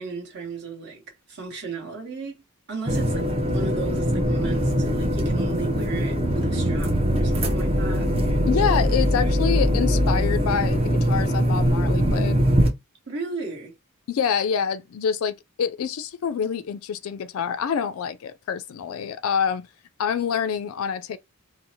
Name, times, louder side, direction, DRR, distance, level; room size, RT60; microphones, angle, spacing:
voice 1, 0.0-2.4 2.7-8.1 13.1-13.7, right 4 dB, 50° right, 1.0 m, -35 dB
sound 1, 2.9-12.7, equal, 25° right, 0.5 m, -22 dB
voice 2, 8.5-12.5 14.1-19.7 20.0-21.2, left 7 dB, 70° left, 0.3 m, -26 dB
2.6 x 2.0 x 2.7 m
head